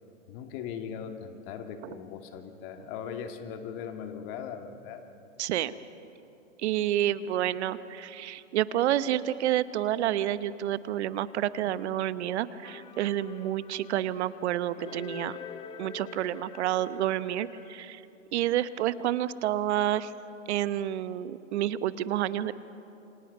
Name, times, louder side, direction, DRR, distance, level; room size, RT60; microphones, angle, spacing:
voice 1, 0.3-5.1, left 7 dB, 45° left, 5 dB, 2.3 m, -39 dB
voice 2, 5.4-5.7 6.6-15.4 15.8-18.0 18.3-20.1 20.5-22.5, right 12 dB, 55° right, 15 dB, 1.0 m, -29 dB
sound 1, 12.6-17.8, left 7 dB, 15° left, 0.7 m, -46 dB
28.0 x 25.5 x 5.5 m, 2.8 s
hypercardioid pair, 125°, 39 cm